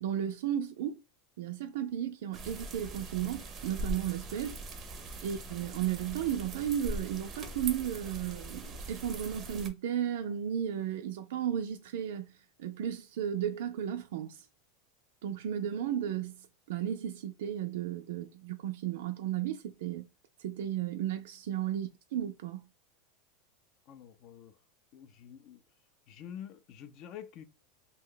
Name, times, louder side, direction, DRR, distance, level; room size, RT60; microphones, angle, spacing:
voice 1, 0.0-1.0 1.4-4.6 5.2-12.3 12.6-14.5 15.2-20.0 20.4-22.6, right 10 dB, 75° right, 0.3 m, -34 dB
sound 1, 2.3-9.7, right 2 dB, 20° right, 0.5 m, -41 dB
voice 2, 23.9-24.6 24.9-25.6 26.1-27.4, left 9 dB, 40° left, 0.4 m, -47 dB
2.7 x 2.1 x 3.7 m
supercardioid pair, 160°, 0 cm